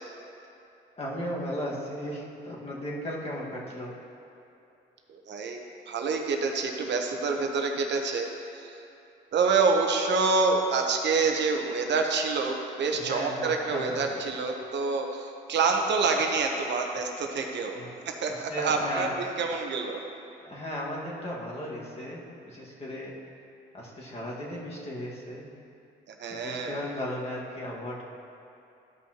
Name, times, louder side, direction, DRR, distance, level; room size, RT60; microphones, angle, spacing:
voice 1, 1.0-3.9 12.9-14.0 17.7-17.9 18.3-19.1 20.4-23.1 23.7-25.5 26.3-28.0, equal, 30° left, -5 dB, 1.9 m, -36 dB
voice 2, 5.1-8.3 8.5-8.8 9.3-17.8 18.1-20.0 26.1-26.8, right 4 dB, 60° right, 2 dB, 1.0 m, -27 dB
13.5 x 5.5 x 3.0 m, 2.8 s
cardioid pair, 90°, 20 cm